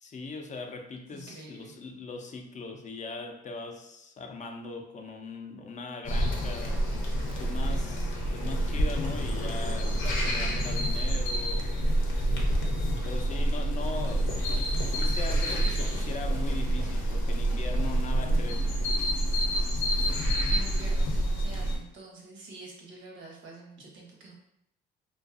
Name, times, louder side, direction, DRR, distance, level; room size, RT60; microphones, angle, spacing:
voice 1, 0.0-6.8 7.4-12.0 13.0-14.3 14.8-18.8, left 3 dB, 40° left, 4 dB, 0.4 m, -40 dB
voice 2, 1.1-1.7 20.5-24.3, right 3 dB, 75° right, -1 dB, 0.7 m, -47 dB
sound 1, 6.0-21.8, right 1 dB, 85° left, 0.6 m, -27 dB
sound 2, 7.2-18.5, left 6 dB, 30° right, 0.4 m, -51 dB
2.5 x 2.2 x 2.4 m, 0.78 s
cardioid pair, 90°, 20 cm